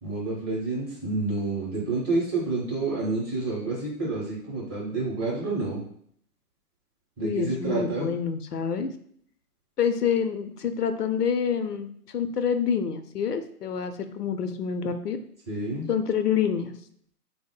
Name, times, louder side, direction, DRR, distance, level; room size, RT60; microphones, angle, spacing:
voice 1, 0.0-5.8 7.2-8.1 15.5-15.9, right 3 dB, 15° right, -4 dB, 0.7 m, -29 dB
voice 2, 7.2-8.9 9.8-15.2 15.9-16.7, left 7 dB, 80° left, 9 dB, 0.6 m, -27 dB
3.6 x 2.1 x 3.6 m, 0.64 s
figure-of-eight pair, 125°, 46 cm